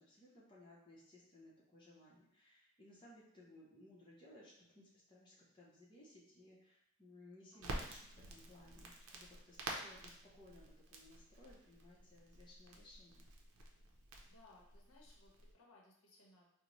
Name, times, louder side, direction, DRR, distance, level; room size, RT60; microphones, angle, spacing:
voice 1, 0.0-13.3, left 1 dB, 20° left, -6 dB, 0.7 m, -61 dB
Crackle, 7.6-15.5, right 2 dB, 85° right, 0.5 m, -50 dB
voice 2, 14.3-16.6, left 2 dB, 75° left, -3 dB, 0.8 m, -65 dB
4.0 x 2.1 x 3.0 m, 0.74 s
head